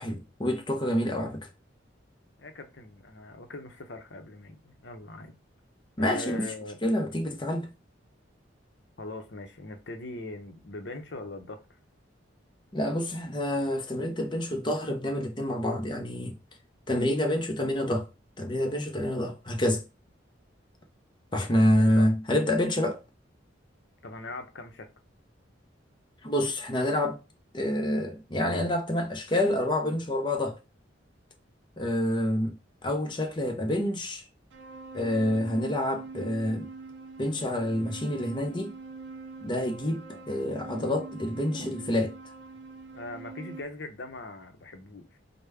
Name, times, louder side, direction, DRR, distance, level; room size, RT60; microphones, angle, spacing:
voice 1, 0.0-1.5 6.0-6.5 6.8-7.7 12.7-16.3 16.9-18.1 18.4-19.8 21.3-23.0 26.2-27.2 27.5-30.6 31.8-32.6 32.8-34.2 34.9-36.7 37.2-38.7 39.4-42.2, left 1 dB, 25° left, 0.7 m, -27 dB
voice 2, 2.4-5.4 6.0-6.8 9.0-11.6 21.9-22.1 24.0-24.9 40.1-40.3 42.9-45.2, left 2 dB, 60° left, 0.8 m, -41 dB
sound 1, 34.5-43.6, right 4 dB, 70° right, 0.5 m, -43 dB
5.0 x 2.1 x 3.3 m
head